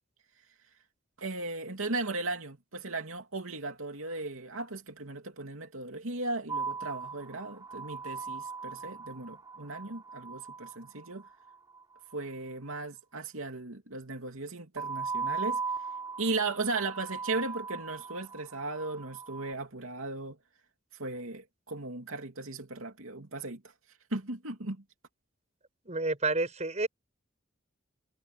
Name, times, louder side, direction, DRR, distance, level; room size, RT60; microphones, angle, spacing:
voice 1, 1.2-11.2 12.1-15.6 16.2-20.4 21.0-23.6 24.1-24.8, right 3 dB, 90° right, 2.7 m, -36 dB
sound 1, 6.5-11.8 14.8-19.5, right 5 dB, 20° right, 3.3 m, -38 dB
voice 2, 25.9-26.9, right 3 dB, 35° right, 6.1 m, -29 dB
head